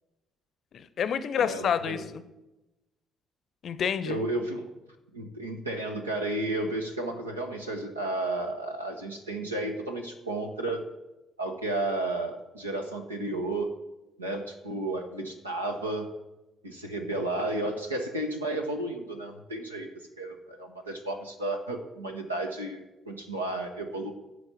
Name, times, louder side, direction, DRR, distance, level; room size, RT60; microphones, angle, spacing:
voice 1, 0.7-2.2 3.6-4.2, left 7 dB, 50° left, 13 dB, 0.6 m, -28 dB
voice 2, 1.4-2.0 4.0-4.6 5.1-10.8 11.4-13.7 14.2-16.1 16.6-19.9 20.2-24.1, right 2 dB, 85° right, 3 dB, 0.9 m, -32 dB
11.0 x 4.8 x 7.2 m, 1.0 s
figure-of-eight pair, 45°, 0 cm